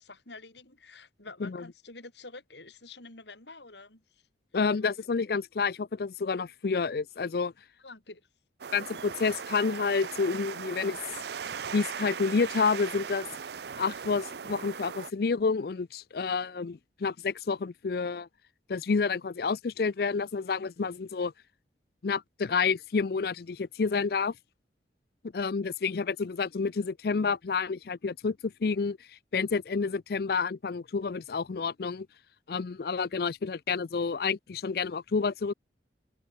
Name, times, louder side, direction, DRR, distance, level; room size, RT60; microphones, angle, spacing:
voice 1, 0.0-4.2 7.8-8.2, left 3 dB, 70° left, 3.8 m, -48 dB
voice 2, 4.5-7.5 8.7-11.0 11.7-13.3 13.8-18.3 18.7-21.3 22.0-24.3 25.3-29.0 29.3-32.1 32.5-35.5, left 5 dB, 55° left, 0.4 m, -29 dB
sound 1, 8.6-15.1, right 6 dB, 60° right, 0.5 m, -38 dB
head